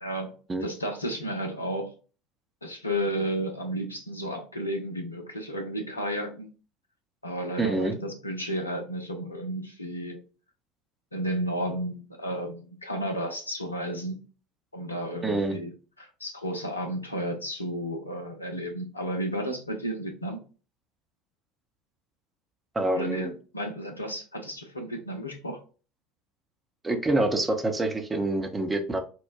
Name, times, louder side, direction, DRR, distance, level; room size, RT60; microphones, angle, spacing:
voice 1, 0.0-1.9 2.6-6.5 7.2-10.2 11.1-14.2 14.7-15.7 16.0-20.4 22.9-25.6, equal, 85° left, 3 dB, 0.6 m, -32 dB
voice 2, 7.6-8.0 15.2-15.6 22.7-23.3 26.8-29.0, right 2 dB, 20° right, 5 dB, 0.6 m, -26 dB
4.4 x 2.1 x 2.4 m, 0.36 s
figure-of-eight pair, 70°, 0 cm